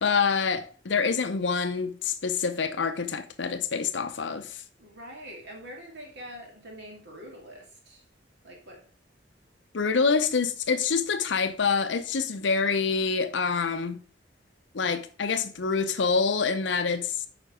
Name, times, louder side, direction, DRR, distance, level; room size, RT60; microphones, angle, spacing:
voice 1, 0.0-4.6 9.7-14.0 14.7-17.2, left 5 dB, 70° left, 0.6 m, -26 dB
voice 2, 4.8-8.0 8.4-8.8, equal, 65° right, 2.5 m, -44 dB
8.4 x 5.1 x 4.9 m
head